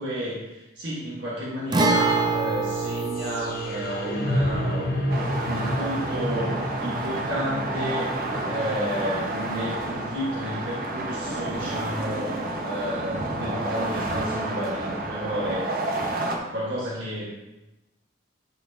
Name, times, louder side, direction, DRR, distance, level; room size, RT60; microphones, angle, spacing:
voice 1, 0.0-15.7 16.1-17.4, equal, 85° right, -7 dB, 1.5 m, -32 dB
Guitar, 1.7-9.3 9.6-9.7 11.7-11.8, right 3 dB, 20° right, 0.5 m, -29 dB
sound 1, 2.0-12.0, left 1 dB, 50° left, 0.8 m, -32 dB
sound 2, 5.1-16.4, right 2 dB, 50° right, 0.8 m, -30 dB
10.5 x 4.4 x 2.8 m, 1.0 s
head